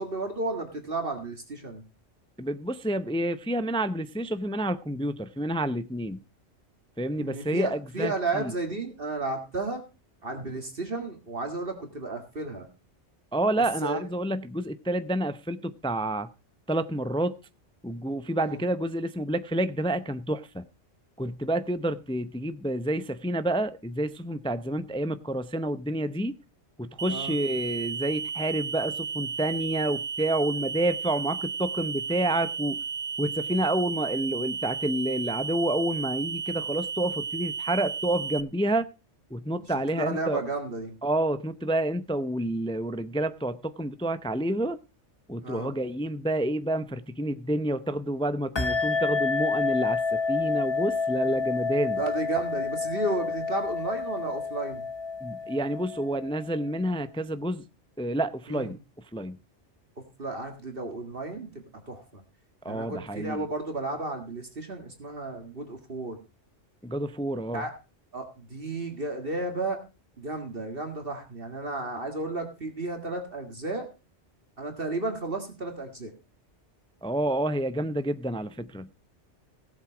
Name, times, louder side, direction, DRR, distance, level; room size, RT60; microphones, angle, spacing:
voice 1, 0.0-1.8 7.2-9.8 10.2-12.7 13.8-14.1 18.4-18.6 27.1-27.3 39.9-40.9 45.4-45.7 52.0-54.8 58.5-58.7 60.2-62.0 62.7-66.2 67.5-67.7 68.1-69.8 70.2-73.9 74.6-76.1, right 2 dB, 50° right, 2.1 m, -33 dB
voice 2, 2.4-6.2 7.0-8.5 13.3-16.3 16.7-17.3 17.8-20.6 21.2-26.3 26.8-32.8 33.2-38.9 39.3-40.4 41.0-44.8 45.3-52.0 55.2-57.6 58.0-58.8 59.1-59.4 62.6-63.5 66.8-67.7 77.0-78.9, right 1 dB, 10° left, 0.4 m, -29 dB
sound 1, 27.0-38.4, right 6 dB, 70° right, 1.2 m, -33 dB
sound 2, 48.6-56.7, left 4 dB, 25° left, 1.0 m, -29 dB
16.5 x 7.4 x 4.9 m
omnidirectional pair, 1.2 m